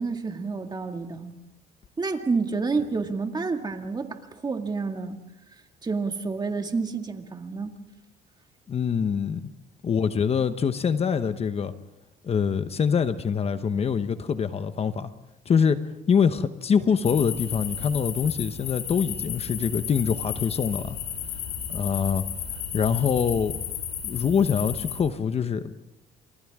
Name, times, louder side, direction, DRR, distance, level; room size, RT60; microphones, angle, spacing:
voice 1, 0.0-1.4 2.0-4.2 4.4-5.2 5.8-7.8, right 4 dB, 25° right, 5 dB, 2.1 m, -29 dB
voice 2, 8.7-9.5 9.8-11.7 12.2-15.1 15.5-15.8 16.1-21.0 21.7-22.2 22.5-23.6 24.0-25.7, left 6 dB, 35° left, 10 dB, 1.0 m, -24 dB
sound 1, 17.0-25.0, left 8 dB, 75° left, 5.2 m, -33 dB
29.5 x 27.0 x 3.7 m, 0.96 s
cardioid pair, 110°, 17 cm